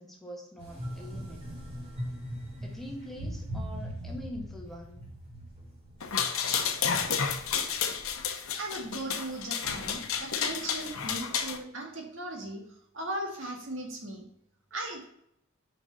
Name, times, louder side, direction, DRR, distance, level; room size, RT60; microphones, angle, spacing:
voice 1, 0.0-1.5 2.6-5.0, equal, ahead, -1 dB, 1.5 m, -44 dB
sound 1, 0.6-8.1, equal, 30° right, 3.4 m, -40 dB
sound 2, 6.0-11.6, left 7 dB, 85° left, 1.0 m, -31 dB
voice 2, 8.2-14.2 14.7-15.0, right 1 dB, 65° right, 1 dB, 2.1 m, -38 dB
6.3 x 5.4 x 5.5 m, 0.74 s
head